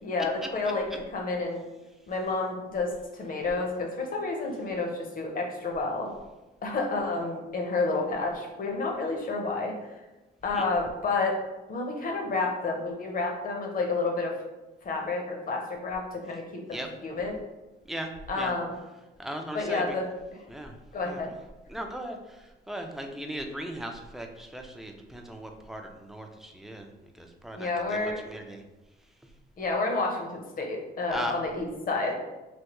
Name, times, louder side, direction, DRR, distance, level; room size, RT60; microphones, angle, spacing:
voice 1, 0.0-1.6 2.1-6.1 6.6-9.7 10.4-11.4 11.7-14.3 14.8-17.4 18.3-18.8 19.5-20.1 20.9-21.3 27.5-28.2 29.6-32.1, left 3 dB, 45° left, 1 dB, 0.7 m, -30 dB
voice 2, 19.2-19.8 20.5-20.7 21.0-21.2 21.7-22.2 22.7-26.9 27.2-28.6 31.1-31.4, equal, ahead, 3 dB, 0.4 m, -37 dB
3.3 x 2.2 x 2.9 m, 1.1 s
cardioid pair, 90°, 20 cm